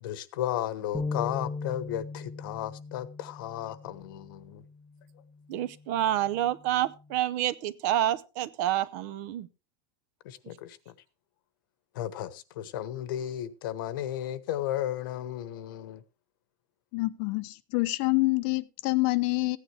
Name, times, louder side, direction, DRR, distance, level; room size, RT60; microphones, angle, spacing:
voice 1, 0.0-4.6 10.2-10.8 11.9-16.0, left 12 dB, 65° left, 1.1 m, -34 dB
sound 1, 0.9-7.2, left 3 dB, 5° left, 0.7 m, -40 dB
voice 2, 5.5-9.5, right 12 dB, 50° right, 0.7 m, -28 dB
voice 3, 16.9-19.6, left 23 dB, 45° left, 0.7 m, -27 dB
15.0 x 9.7 x 3.3 m
supercardioid pair, 160°, 12 cm